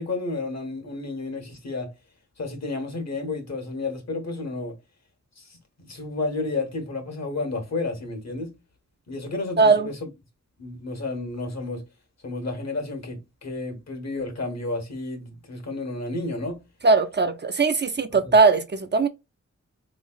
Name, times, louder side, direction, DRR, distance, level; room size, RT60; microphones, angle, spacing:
voice 1, 0.0-1.9 2.4-4.8 5.4-5.6 5.8-8.5 9.1-10.1 10.6-11.8 12.2-16.6 18.1-18.3, left 3 dB, 65° left, 1.2 m, -31 dB
voice 2, 9.6-9.9 16.8-19.1, right 4 dB, 35° right, 0.5 m, -19 dB
3.7 x 3.1 x 2.3 m
wide cardioid pair, 85°, 29 cm